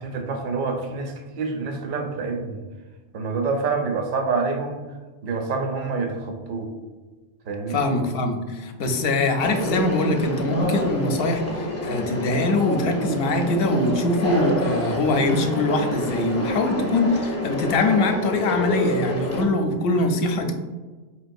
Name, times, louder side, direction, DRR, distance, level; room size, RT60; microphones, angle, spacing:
voice 1, 0.0-2.6 3.1-4.8 5.2-6.7 7.5-7.8, right 4 dB, 60° right, 4 dB, 0.7 m, -27 dB
voice 2, 7.7-20.5, left 2 dB, 70° left, 5 dB, 0.8 m, -23 dB
Conversation, 9.4-19.4, left 1 dB, 20° left, 0.5 m, -28 dB
4.6 x 3.0 x 2.5 m, 1.3 s
omnidirectional pair, 1.0 m